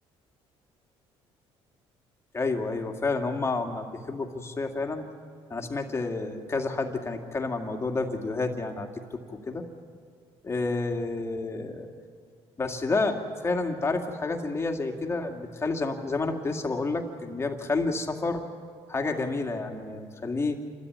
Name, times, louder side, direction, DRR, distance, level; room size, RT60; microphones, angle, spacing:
voice 1, 2.3-5.1 5.5-9.6 10.4-11.9 12.6-18.4 18.9-20.6, left 3 dB, 25° left, 3 dB, 2.3 m, -30 dB
28.5 x 13.0 x 9.7 m, 2.3 s
cardioid pair, 110°, 11 cm